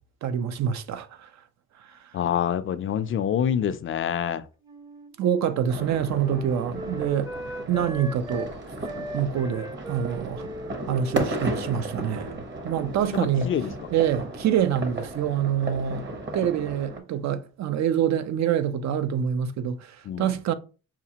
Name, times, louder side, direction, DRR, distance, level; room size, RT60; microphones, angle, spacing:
voice 1, 0.2-1.3 5.2-7.3 7.7-8.5 9.1-10.5 10.9-13.5 13.9-20.5, right 9 dB, 65° right, 0.5 m, -26 dB
voice 2, 2.1-4.5 13.1-13.7 20.0-20.4, left 9 dB, 45° left, 0.4 m, -26 dB
Wind instrument woodwind instrument, 4.6-8.5 8.8-12.4 12.6-13.2, right 1 dB, 15° right, 0.5 m, -39 dB
sound 1, 5.7-17.0, right 1 dB, 35° right, 1.0 m, -35 dB
5.8 x 2.3 x 2.8 m
cardioid pair, 90°, 30 cm